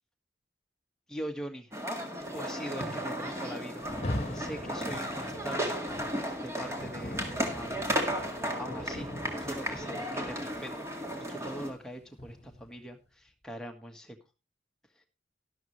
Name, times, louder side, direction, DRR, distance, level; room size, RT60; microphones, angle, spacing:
voice 1, 1.1-1.7 2.3-3.8 4.3-5.8 6.4-7.8 8.6-9.1 9.4-10.8 11.3-14.2, right 1 dB, 5° left, 3 dB, 1.5 m, -42 dB
sound 1, 1.7-11.7, equal, 15° right, 1.8 m, -35 dB
Rain, 3.7-12.8, left 1 dB, 35° left, 1.4 m, -41 dB
12.0 x 12.0 x 3.1 m, 0.28 s
head